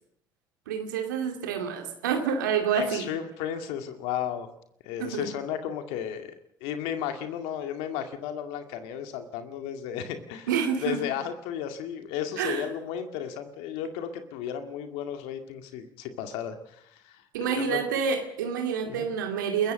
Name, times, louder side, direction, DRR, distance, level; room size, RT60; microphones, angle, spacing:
voice 1, 0.7-3.1 5.0-5.3 10.5-11.0 12.4-12.6 17.3-19.7, right 7 dB, 85° right, 5 dB, 2.3 m, -28 dB
voice 2, 2.7-4.5 4.9-6.3 6.6-10.5 10.8-17.8 18.9-19.1, left 9 dB, 75° left, 7 dB, 2.1 m, -34 dB
28.0 x 15.0 x 6.4 m, 0.74 s
hypercardioid pair, 65°, 10 cm